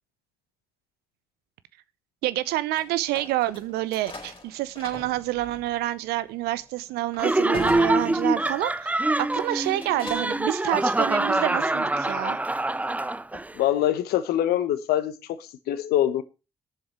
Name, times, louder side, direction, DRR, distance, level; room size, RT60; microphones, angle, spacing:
voice 1, 2.2-12.4, right 15 dB, 70° right, 0.7 m, -28 dB
sound 1, 2.7-8.8 9.2-10.5, left 2 dB, 30° left, 4.4 m, -42 dB
Laughter, 7.2-13.5, right 2 dB, 10° right, 0.5 m, -25 dB
voice 2, 13.5-16.2, left 12 dB, 65° left, 1.1 m, -24 dB
21.0 x 7.1 x 3.0 m
hypercardioid pair, 45°, 17 cm